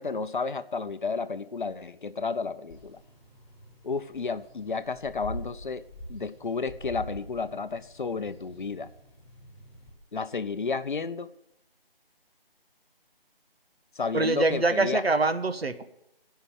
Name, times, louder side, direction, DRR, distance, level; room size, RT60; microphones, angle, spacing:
voice 1, 0.0-3.0 3.8-8.9 10.1-11.3 14.0-15.0, left 4 dB, 55° left, 13 dB, 0.7 m, -32 dB
sound 1, 2.7-9.9, equal, 5° left, 6.4 m, -45 dB
voice 2, 14.1-15.8, right 3 dB, 85° right, 9 dB, 1.4 m, -24 dB
14.5 x 5.7 x 9.2 m, 0.82 s
figure-of-eight pair, 165°, 30 cm